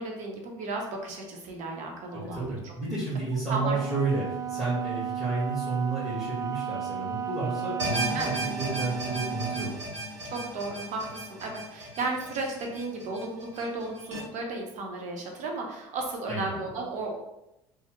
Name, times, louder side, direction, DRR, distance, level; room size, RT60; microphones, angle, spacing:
voice 1, 0.0-2.7 3.5-3.8 8.1-8.3 10.2-17.2, right 3 dB, 55° right, 1 dB, 0.8 m, -34 dB
voice 2, 2.1-8.2 8.6-9.9 16.2-16.5, right 3 dB, ahead, -10 dB, 1.4 m, -31 dB
Wind instrument woodwind instrument, 3.5-9.8, right 9 dB, 25° right, 0.4 m, -34 dB
sound 1, 7.8-14.2, right 1 dB, 90° right, 0.7 m, -36 dB
3.1 x 2.0 x 3.0 m, 0.88 s
hypercardioid pair, 70°, 15 cm